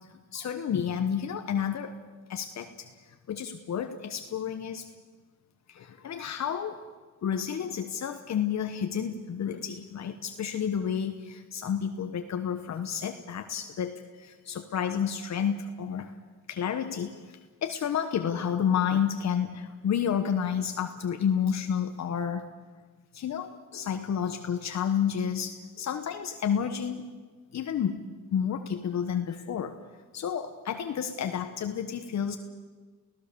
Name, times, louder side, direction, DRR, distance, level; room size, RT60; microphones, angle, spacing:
voice 1, 0.1-2.0 2.3-2.9 3.3-4.9 5.7-6.8 7.2-16.1 16.5-22.5 23.1-27.1 27.5-29.8 30.1-32.4, left 8 dB, 60° left, 7 dB, 1.3 m, -30 dB
29.0 x 17.0 x 7.0 m, 1.4 s
cardioid pair, 115°, 30 cm